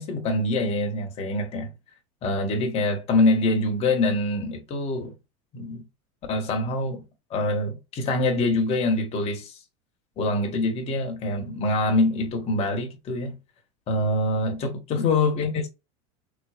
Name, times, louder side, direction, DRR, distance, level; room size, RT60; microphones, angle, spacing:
voice 1, 0.0-1.7 2.2-5.1 5.5-5.8 6.3-7.0 7.3-9.5 10.2-13.3 13.9-15.7, left 2 dB, 35° left, 1.3 m, -25 dB
3.9 x 3.1 x 2.5 m
supercardioid pair, 145°, 18 cm